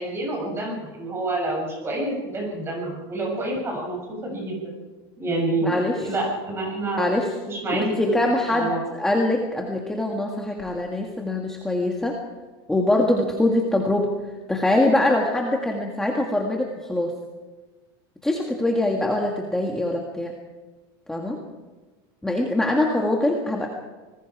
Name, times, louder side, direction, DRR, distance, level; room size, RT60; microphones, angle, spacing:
voice 1, 0.0-4.6 5.2-7.1 7.4-8.1 8.5-8.8, right 2 dB, 20° right, 0 dB, 7.1 m, -28 dB
voice 2, 5.6-6.0 7.0-7.3 7.7-12.2 12.7-14.1 14.5-17.1 18.2-20.3 21.1-21.4 22.2-23.7, left 1 dB, 5° left, 0 dB, 1.7 m, -23 dB
26.5 x 20.5 x 4.8 m, 1.3 s
supercardioid pair, 165°, 13 cm